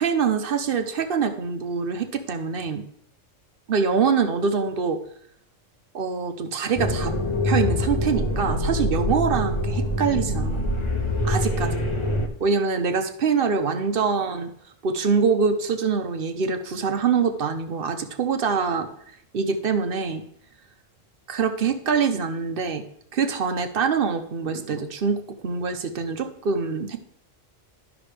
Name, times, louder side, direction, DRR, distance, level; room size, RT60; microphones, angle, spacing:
voice 1, 0.0-2.8 3.7-5.0 5.9-7.1 7.4-10.7 11.2-11.8 12.4-14.5 14.8-18.9 19.3-20.2 21.3-22.8 23.1-25.2 25.4-27.0, right 5 dB, 55° right, 8 dB, 0.8 m, -24 dB
sound 1, 6.8-12.3, left 1 dB, 30° left, 0.6 m, -24 dB
12.0 x 6.0 x 3.3 m, 0.68 s
omnidirectional pair, 1.3 m